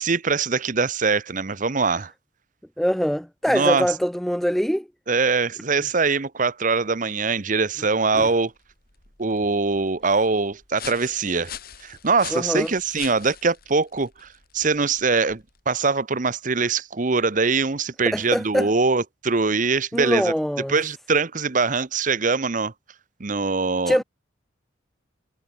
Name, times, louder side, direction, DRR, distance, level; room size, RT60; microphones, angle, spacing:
voice 1, 0.0-2.1 3.5-3.9 5.1-8.5 9.2-11.5 11.8-14.3 14.5-20.3 20.7-22.7 23.2-24.0, right 4 dB, 40° right, 0.9 m, -23 dB
voice 2, 2.8-4.9 8.1-8.3 12.3-12.7 18.1-18.7 19.9-20.7 23.9-24.0, equal, ahead, 0.4 m, -23 dB
sound 1, 8.3-15.8, left 9 dB, 50° left, 4.2 m, -43 dB
head